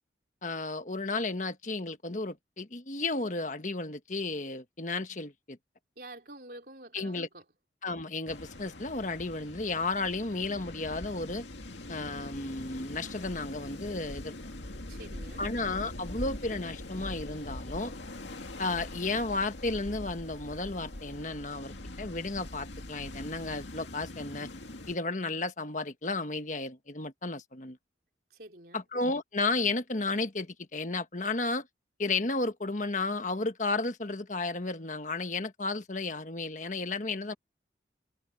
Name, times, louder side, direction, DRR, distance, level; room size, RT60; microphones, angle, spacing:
voice 1, 0.4-5.6 6.9-7.3 7.8-11.4 11.9-14.3 15.4-17.9 18.6-24.5 24.9-27.8 28.7-31.7 32.0-37.3, left 3 dB, 40° left, 1.4 m, -33 dB
voice 2, 6.0-7.4 14.7-15.4 28.3-28.8, right 2 dB, 50° right, 3.9 m, -48 dB
sound 1, 8.3-25.0, left 1 dB, 75° left, 2.3 m, -43 dB
head